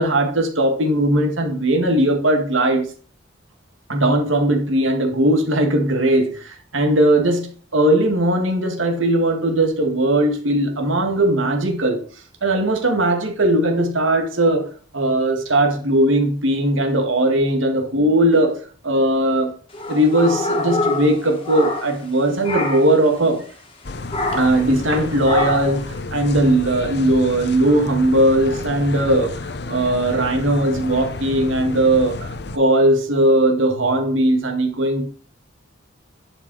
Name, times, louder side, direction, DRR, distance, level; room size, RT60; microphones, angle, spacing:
voice 1, 0.0-2.9 3.9-12.0 12.4-14.7 14.9-18.6 18.8-19.5 19.9-23.4 24.3-29.4 29.7-35.1, right 1 dB, 85° right, 2.2 m, -18 dB
sound 1, 19.7-22.1 22.4-23.0 24.1-24.7 25.2-25.8, left 2 dB, 25° left, 1.8 m, -25 dB
sound 2, 23.8-32.6, left 2 dB, 55° left, 0.7 m, -31 dB
10.5 x 5.6 x 4.8 m
head